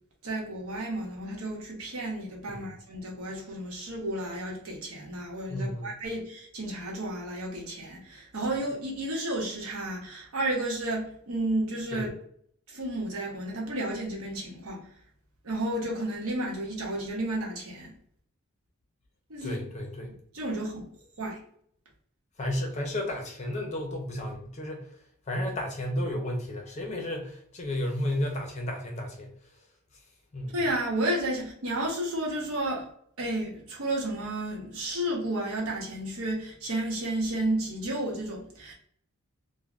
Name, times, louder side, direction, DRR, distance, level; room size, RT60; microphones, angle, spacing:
voice 1, 0.2-12.1 12.7-14.8 15.4-17.9 19.3-19.6 20.3-20.8 21.2-21.4 30.5-32.9 33.2-38.7, right 1 dB, 80° right, 0.9 m, -32 dB
voice 2, 5.5-5.9 11.9-12.1 19.4-20.1 22.4-24.9 25.3-29.3 30.3-30.7, left 1 dB, 30° left, 0.6 m, -32 dB
3.2 x 2.1 x 2.4 m
head